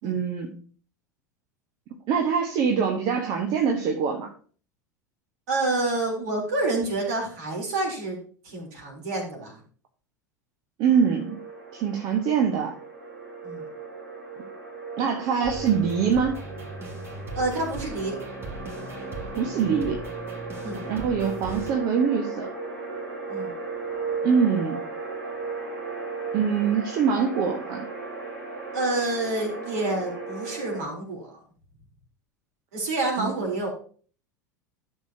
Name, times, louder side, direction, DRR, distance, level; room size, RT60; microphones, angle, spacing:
voice 1, 0.0-0.6 2.1-4.3 10.8-11.4 11.7-12.7 15.0-16.4 19.3-20.0 20.8-22.5 24.2-24.9 26.3-27.9 33.2-33.3, right 6 dB, 50° right, 2 dB, 1.4 m, -24 dB
voice 2, 5.5-8.2 8.4-9.6 13.4-13.7 17.3-18.2 20.6-20.9 23.3-23.5 28.7-31.4 32.7-33.7, right 2 dB, 65° right, 0 dB, 3.6 m, -28 dB
sound 1, 10.9-30.8, right 4 dB, 90° right, 3.1 m, -36 dB
sound 2, 15.4-21.7, right 1 dB, 25° right, 2.8 m, -39 dB
12.5 x 6.9 x 2.9 m, 0.43 s
figure-of-eight pair, 80°, 10 cm